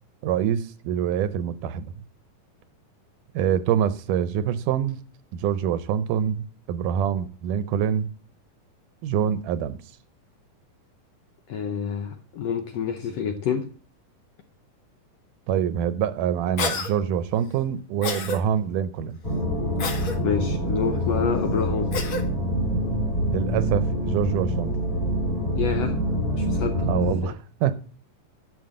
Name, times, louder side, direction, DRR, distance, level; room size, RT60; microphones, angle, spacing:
voice 1, 0.2-2.0 3.4-5.0 5.3-8.1 9.0-9.8 15.5-19.2 23.3-24.7 26.8-27.7, right 9 dB, 80° right, 2.1 m, -25 dB
voice 2, 11.5-13.7 20.2-21.9 25.5-26.0 26.3-26.9 27.2-27.3, left 7 dB, 70° left, 1.6 m, -27 dB
Cough, 16.6-16.9 18.0-18.4 19.8-20.2 21.9-22.2, left 4 dB, 50° left, 1.7 m, -28 dB
sound 1, 19.2-27.1, equal, 25° left, 3.4 m, -26 dB
11.5 x 5.4 x 7.6 m
omnidirectional pair, 3.9 m